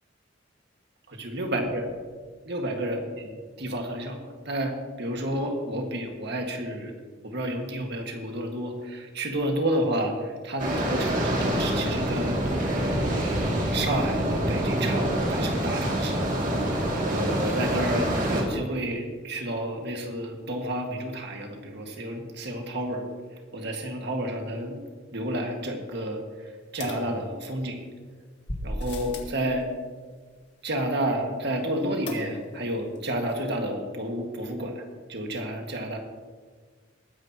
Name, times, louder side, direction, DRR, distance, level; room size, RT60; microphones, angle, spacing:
voice 1, 1.1-1.8 2.4-3.3 3.6-6.9 7.2-16.2 16.7-23.1 23.5-24.8 25.1-27.8 28.6-29.7 30.6-36.0, right 1 dB, 60° right, 3 dB, 1.8 m, -31 dB
sound 1, 10.6-18.4, right 1 dB, 45° right, 2.4 m, -26 dB
sound 2, 26.8-27.8 28.5-29.4 32.1-32.7 33.0-33.1 33.3-33.4, left 1 dB, 65° left, 2.0 m, -36 dB
20.5 x 9.9 x 2.9 m, 1.5 s
head